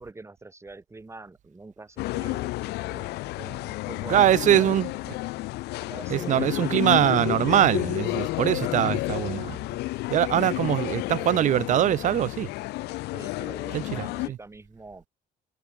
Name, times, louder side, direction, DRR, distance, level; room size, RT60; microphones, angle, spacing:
voice 1, 0.0-4.7 5.8-6.9 8.6-8.8 10.4-10.8 13.1-15.0, right 3 dB, 15° right, 3.2 m, -44 dB
sound 1, 2.0-14.3, left 20 dB, 80° left, 0.4 m, -31 dB
voice 2, 4.1-4.9 6.1-9.6 10.1-12.5 13.7-14.4, right 12 dB, 50° right, 0.4 m, -22 dB
cardioid pair, 110°, 17 cm